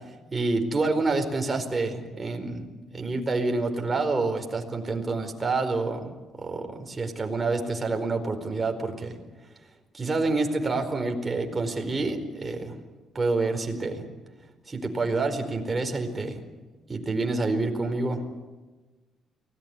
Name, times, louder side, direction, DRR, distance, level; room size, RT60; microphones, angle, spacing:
voice 1, 0.3-2.7 2.9-9.2 9.9-12.7 13.1-14.0 14.7-16.4 16.9-18.2, right 3 dB, 25° right, 4 dB, 4.7 m, -28 dB
24.0 x 18.5 x 9.8 m, 1.2 s
cardioid pair, 90°, 0 cm